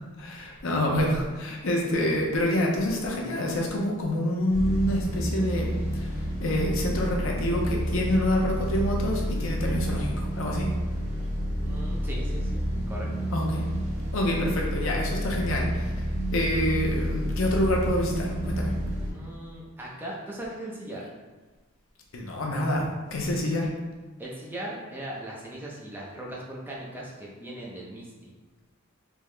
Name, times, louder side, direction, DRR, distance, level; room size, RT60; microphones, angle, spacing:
voice 1, 0.2-10.7 13.3-13.6 14.1-15.9 16.3-18.7 22.1-23.7, left 1 dB, 65° left, -1 dB, 0.6 m, -27 dB
sound 1, 4.5-19.1, equal, 35° right, 1.0 m, -29 dB
voice 2, 11.6-12.6 12.9-13.3 19.1-21.1 24.2-28.3, right 1 dB, 10° right, -5 dB, 0.5 m, -39 dB
3.5 x 2.8 x 3.2 m, 1.3 s
head